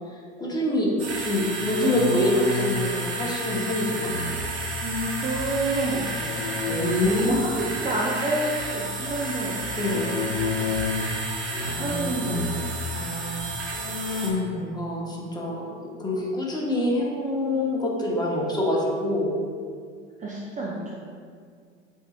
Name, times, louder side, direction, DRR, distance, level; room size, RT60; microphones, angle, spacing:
voice 1, 0.0-4.1 6.7-7.6 9.8-10.0 11.7-12.5 12.9-19.4, left 1 dB, 10° left, -4 dB, 1.0 m, -26 dB
sound 1, 1.0-14.3, right 2 dB, 80° right, 0.9 m, -31 dB
sound 2, 1.5-2.8 4.0-4.7 6.2-6.8 9.7-11.1 11.5-12.0 12.2-12.7 13.3-13.4 13.7-14.5, left 4 dB, 85° left, 1.0 m, -31 dB
voice 2, 4.8-6.4 6.8-9.6 9.9-10.4 11.8-12.7 20.2-20.9, right 2 dB, 20° right, -4 dB, 0.6 m, -29 dB
7.8 x 2.8 x 2.4 m, 2.1 s
hypercardioid pair, 85°, 35 cm